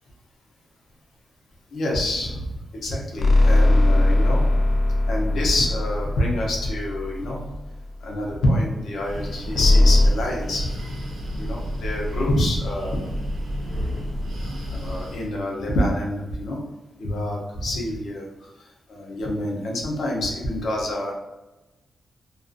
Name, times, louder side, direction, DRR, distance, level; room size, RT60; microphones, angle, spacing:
voice 1, 1.7-2.4 2.7-4.5 5.1-7.5 8.0-10.7 11.4-13.0 14.5-16.6 17.0-18.5 18.9-21.1, left 1 dB, 75° left, -2 dB, 0.7 m, -26 dB
sound 1, 3.2-7.7 9.5-10.1, left 2 dB, 45° left, 0.3 m, -19 dB
Breathing, 8.8-15.4, equal, 55° right, 0.7 m, -30 dB
2.6 x 2.4 x 2.4 m, 1.1 s
wide cardioid pair, 160°, 0 cm